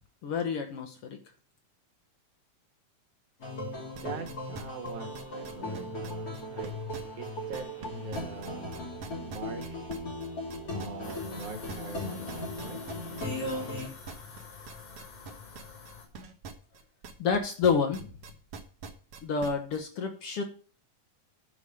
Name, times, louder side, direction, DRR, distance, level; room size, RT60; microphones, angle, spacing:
voice 1, 0.2-1.2 17.2-18.1 19.2-20.4, left 5 dB, 60° left, 5 dB, 1.7 m, -28 dB
sound 1, 3.4-13.9, left 1 dB, 30° left, 3.4 m, -37 dB
sound 2, 3.9-7.9 8.1-17.4 17.6-19.8, right 5 dB, 60° right, 2.0 m, -44 dB
voice 2, 4.0-6.8 7.2-8.9 9.2-9.9 10.7-12.8, right 4 dB, 75° right, 3 dB, 3.2 m, -42 dB
sound 3, 11.0-16.1, left 5 dB, 80° left, 6.4 m, -47 dB
10.0 x 5.1 x 6.9 m, 0.40 s
omnidirectional pair, 3.4 m